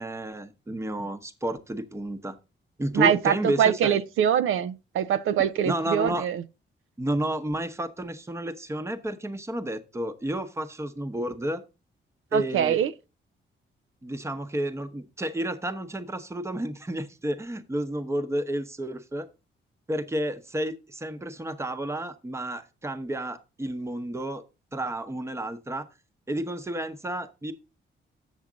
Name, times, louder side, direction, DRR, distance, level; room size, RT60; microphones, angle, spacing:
voice 1, 0.0-2.4 2.8-4.0 5.6-6.3 7.0-11.6 12.3-12.8 14.0-19.3 19.9-24.4 24.7-25.9 26.3-27.5, right 1 dB, 15° right, 0.8 m, -31 dB
voice 2, 2.9-6.4 12.3-12.9, right 9 dB, 90° right, 0.5 m, -23 dB
7.3 x 7.2 x 3.8 m
cardioid pair, 125°, 20 cm